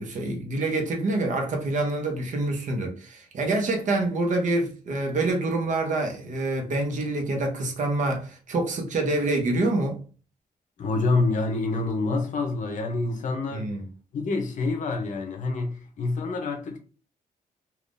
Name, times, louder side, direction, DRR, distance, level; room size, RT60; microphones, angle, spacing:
voice 1, 0.0-10.0 13.5-13.8, right 2 dB, 55° right, 0.8 m, -26 dB
voice 2, 10.8-13.7 14.1-16.8, left 3 dB, 60° left, 0.6 m, -27 dB
3.5 x 2.3 x 2.5 m
wide cardioid pair, 160°, 15 cm